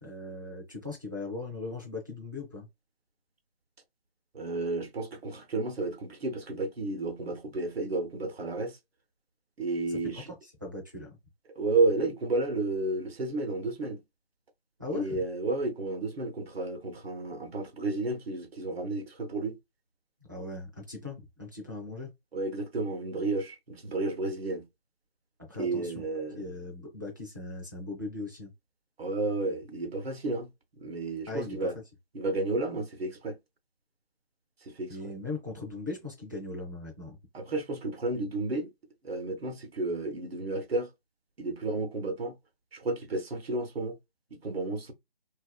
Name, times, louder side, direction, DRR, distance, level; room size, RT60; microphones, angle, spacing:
voice 1, 0.0-2.7 10.1-10.2 10.6-11.2 14.8-15.2 20.3-22.1 25.5-26.0 26.4-28.5 31.3-31.7 34.9-37.2, left 2 dB, 20° right, 0.4 m, -39 dB
voice 2, 4.3-8.8 9.6-10.3 11.6-14.0 14.9-19.6 22.3-24.7 25.6-26.5 29.0-30.5 30.8-31.8 32.1-33.4 34.7-35.1 37.3-38.7 39.0-40.9 41.4-42.4 42.7-44.0 44.3-44.9, right 3 dB, 80° right, 0.8 m, -32 dB
2.4 x 2.4 x 2.2 m
figure-of-eight pair, 155°, 30 cm